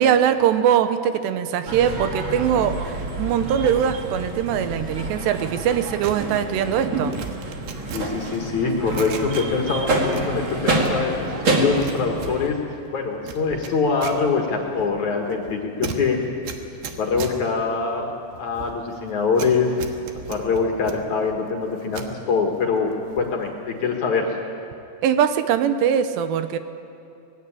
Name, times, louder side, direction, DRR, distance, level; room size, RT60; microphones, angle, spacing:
voice 1, 0.0-7.2 25.0-26.6, right 9 dB, 85° right, 10 dB, 3.0 m, -21 dB
sound 1, 1.6-12.5, right 2 dB, 40° right, 2.0 m, -27 dB
sound 2, 6.0-9.8 10.1-11.3 11.5-22.2 22.6-23.4 23.7-24.0, right 6 dB, 70° right, 3.1 m, -37 dB
voice 2, 7.9-16.2 16.9-18.1 18.4-19.8 20.3-24.4, left 4 dB, 55° left, 2 dB, 2.4 m, -24 dB
20.0 x 16.5 x 10.0 m, 2.7 s
omnidirectional pair, 5.0 m